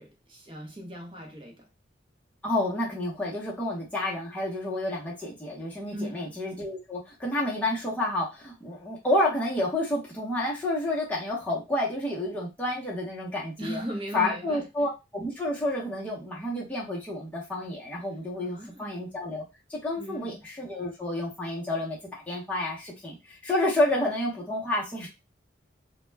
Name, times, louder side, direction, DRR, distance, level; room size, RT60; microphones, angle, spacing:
voice 1, 0.0-1.7 5.9-6.4 13.6-14.6 18.4-19.0 20.0-20.5, equal, 25° right, 0.7 m, -38 dB
voice 2, 2.4-13.8 14.1-19.4 19.7-25.1, left 1 dB, 10° left, 0.7 m, -30 dB
2.2 x 2.1 x 3.2 m
head